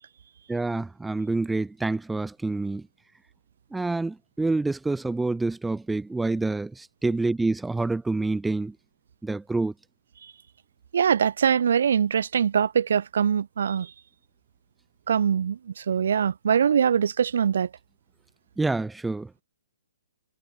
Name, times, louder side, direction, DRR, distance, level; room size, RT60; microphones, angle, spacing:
voice 1, 0.5-2.8 3.7-8.7 9.2-9.7 18.6-19.3, right 3 dB, 5° right, 0.6 m, -27 dB
voice 2, 10.9-13.9 15.1-17.7, right 7 dB, 60° right, 1.1 m, -23 dB
hypercardioid pair, 165°, 0 cm